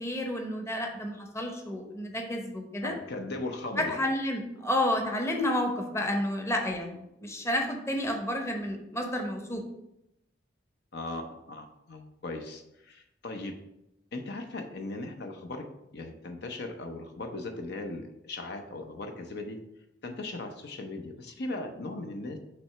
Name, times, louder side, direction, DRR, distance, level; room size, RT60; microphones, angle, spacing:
voice 1, 0.0-2.9 3.8-9.6, left 1 dB, 15° left, 2 dB, 0.8 m, -30 dB
voice 2, 2.8-4.0 10.9-13.5 14.1-15.6 15.9-19.6 20.0-22.4, left 2 dB, 65° left, 5 dB, 0.7 m, -38 dB
5.8 x 3.2 x 5.8 m, 0.86 s
head